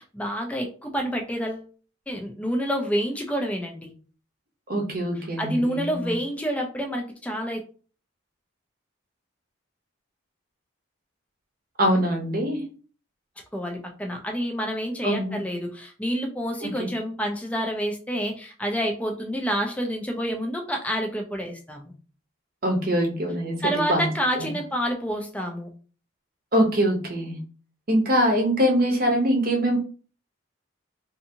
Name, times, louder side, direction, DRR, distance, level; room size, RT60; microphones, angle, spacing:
voice 1, 0.0-1.7 2.1-3.9 5.4-7.6 13.5-21.9 23.6-25.7, equal, 5° left, 2 dB, 0.4 m, -28 dB
voice 2, 4.7-6.1 11.8-12.6 15.0-15.4 16.6-16.9 22.6-24.1 24.4-24.6 26.5-27.4 27.9-29.8, equal, 45° right, 2 dB, 0.7 m, -23 dB
2.6 x 2.6 x 2.6 m, 0.39 s
head